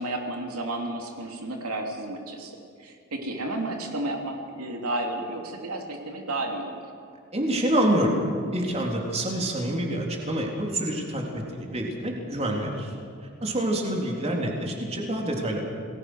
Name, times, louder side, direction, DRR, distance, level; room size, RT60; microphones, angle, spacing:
voice 1, 0.0-6.8 14.1-14.2, right 1 dB, 80° right, 1 dB, 3.2 m, -32 dB
voice 2, 7.3-8.2 8.5-12.9 13.4-15.6, right 1 dB, 30° right, 0 dB, 3.7 m, -27 dB
29.0 x 20.5 x 6.4 m, 2.4 s
head